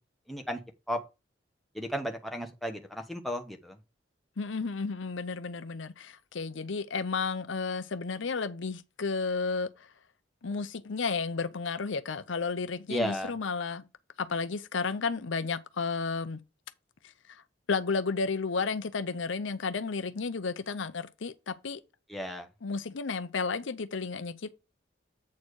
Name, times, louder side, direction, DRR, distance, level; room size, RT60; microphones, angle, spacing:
voice 1, 0.3-0.6 0.9-1.0 1.7-3.8 12.9-13.3 22.1-22.5, equal, ahead, 1.1 m, -34 dB
voice 2, 4.4-9.9 10.4-13.8 14.2-16.4 17.3-17.4 17.7-21.8 22.6-24.5, left 4 dB, 75° left, 0.7 m, -32 dB
8.4 x 4.4 x 4.7 m
head